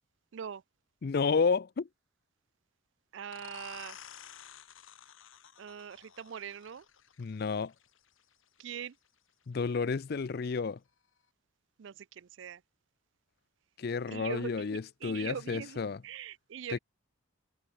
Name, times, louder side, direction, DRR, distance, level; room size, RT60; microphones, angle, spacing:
voice 1, 0.3-0.6 3.1-4.0 5.6-6.9 8.6-9.0 11.8-12.6 14.1-16.8, right 8 dB, 60° right, 0.4 m, -42 dB
voice 2, 1.0-1.9 7.2-7.7 9.5-10.8 13.8-16.0 16.7-16.8, left 5 dB, 50° left, 0.4 m, -31 dB
sound 1, 3.3-8.7, left 8 dB, 70° left, 1.7 m, -52 dB
head